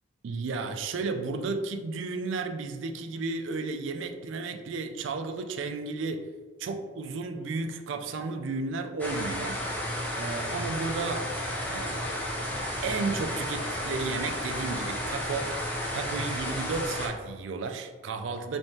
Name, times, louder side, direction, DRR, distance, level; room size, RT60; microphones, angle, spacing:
voice 1, 0.2-6.3 6.6-9.6 10.2-11.3 11.7-12.1 12.8-15.5 15.9-18.6, right 4 dB, 75° right, 7 dB, 0.4 m, -33 dB
sound 1, 9.0-17.1, equal, 10° left, 0.5 m, -32 dB
3.5 x 3.5 x 2.7 m, 1.4 s
head